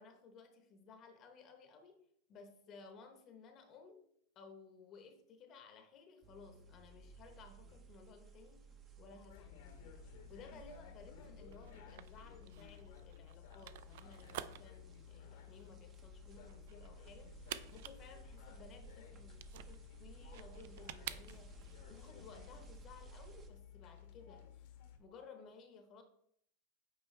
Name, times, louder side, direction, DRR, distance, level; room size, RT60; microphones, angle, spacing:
voice 1, 0.0-4.0 4.3-26.0, left 5 dB, 30° left, 6 dB, 0.9 m, -58 dB
sound 1, 6.2-23.5, right 4 dB, 25° right, 0.8 m, -58 dB
sound 2, 9.3-25.0, left 9 dB, 60° left, 1.1 m, -56 dB
sound 3, 11.5-21.7, right 12 dB, 60° right, 0.3 m, -51 dB
8.2 x 4.4 x 3.2 m, 0.69 s
supercardioid pair, 155°, 0 cm